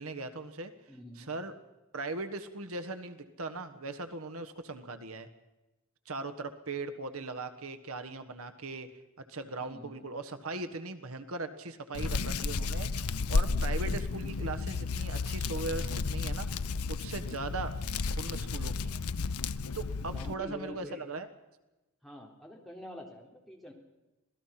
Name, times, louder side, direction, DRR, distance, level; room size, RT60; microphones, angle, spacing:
voice 1, 0.0-0.7 1.2-1.6 1.9-5.3 6.0-8.9 9.3-16.5 16.9-17.7 18.2-19.0 19.7-21.3, right 3 dB, 70° right, 9 dB, 1.5 m, -39 dB
voice 2, 0.9-1.3 9.6-10.0 17.1-17.5 19.9-21.1 22.0-23.7, left 1 dB, ahead, -1 dB, 3.6 m, -46 dB
Hands, 11.9-20.3, left 4 dB, 85° left, 0.7 m, -32 dB
26.5 x 18.0 x 5.9 m, 1.1 s
head